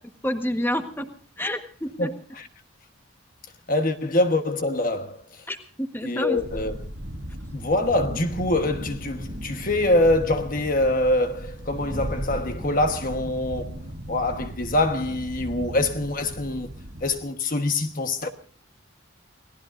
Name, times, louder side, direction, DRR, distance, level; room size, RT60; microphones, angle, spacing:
voice 1, 0.2-1.1 1.4-2.1 5.5-6.6, equal, 10° left, 1.4 m, -29 dB
voice 2, 3.7-5.2 6.0-6.8 7.5-13.8 14.1-16.7 17.0-18.3, left 2 dB, 40° left, 1.3 m, -24 dB
sound 1, 6.4-17.2, equal, 60° right, 2.3 m, -36 dB
29.0 x 18.5 x 2.6 m
head